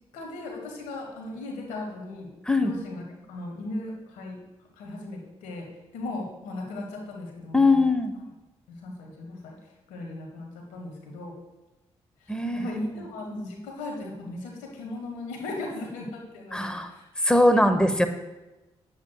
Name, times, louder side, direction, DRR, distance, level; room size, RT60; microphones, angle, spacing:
voice 1, 0.1-2.3 2.6-3.0 3.3-4.4 4.8-5.7 5.9-7.9 8.7-9.6 9.9-11.3 12.2-17.0, left 2 dB, 85° left, 1 dB, 1.4 m, -37 dB
voice 2, 7.5-8.1 12.3-12.8 16.5-16.9 17.2-18.1, left 2 dB, 5° left, 8 dB, 1.0 m, -21 dB
9.4 x 8.1 x 2.3 m, 1.0 s
hypercardioid pair, 45°, 13 cm